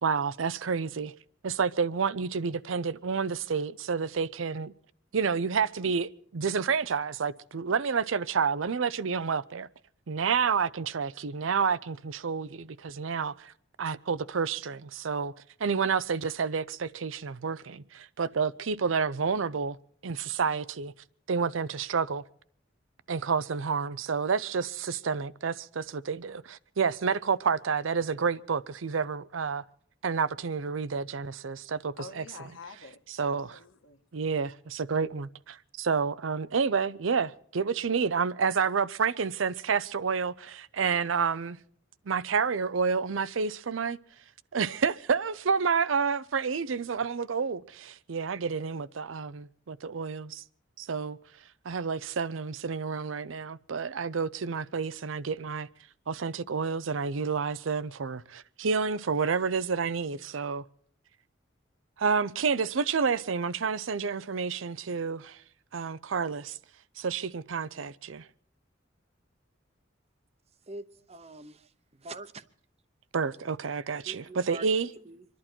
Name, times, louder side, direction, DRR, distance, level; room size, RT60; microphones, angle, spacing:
voice 1, 0.0-1.1 1.4-4.7 5.1-9.7 10.1-13.5 13.8-15.3 15.6-19.8 20.0-20.9 21.3-22.2 23.1-29.6 30.0-32.2 33.1-33.6 34.1-41.6 42.1-44.0 44.5-50.4 50.8-51.2 51.6-55.7 56.1-60.6 62.0-65.4 65.7-66.6 67.0-68.3 73.1-74.9, right 5 dB, 85° right, 0.6 m, -29 dB
voice 2, 32.0-34.0, left 4 dB, 90° left, 1.6 m, -47 dB
voice 3, 70.7-72.4 74.1-74.7 75.0-75.3, right 2 dB, 35° right, 0.8 m, -44 dB
26.0 x 11.5 x 4.4 m
head